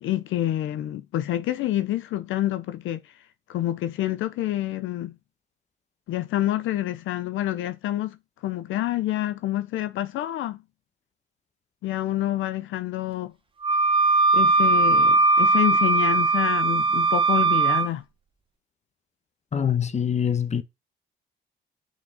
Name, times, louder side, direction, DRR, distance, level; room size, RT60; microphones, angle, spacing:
voice 1, 0.0-3.2 3.5-5.1 6.1-10.6 11.8-13.3 14.3-18.0, left 13 dB, 80° left, 0.6 m, -27 dB
Wind instrument woodwind instrument, 13.6-17.9, right 3 dB, 25° right, 1.2 m, -20 dB
voice 2, 19.5-20.6, left 8 dB, 35° left, 1.1 m, -24 dB
6.0 x 5.4 x 4.3 m
cardioid pair, 90°, 20 cm